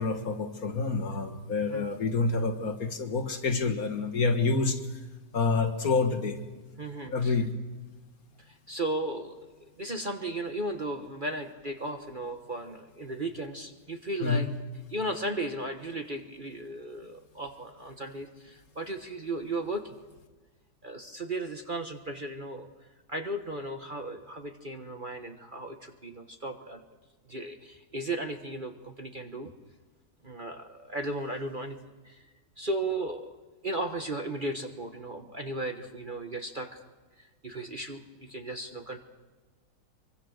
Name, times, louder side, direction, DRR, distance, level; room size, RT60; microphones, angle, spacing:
voice 1, 0.0-4.8 5.3-6.4 7.1-7.5 14.2-14.5, left 4 dB, 55° left, 5 dB, 2.1 m, -28 dB
voice 2, 6.8-7.4 8.5-9.4 9.8-14.5 14.9-19.9 20.8-22.7 23.1-26.8 27.3-29.5 30.2-31.8 32.0-32.2 32.6-33.3 33.6-36.8 37.2-39.0, right 1 dB, 30° right, 5 dB, 1.3 m, -35 dB
25.5 x 23.5 x 6.5 m, 1.3 s
omnidirectional pair, 1.9 m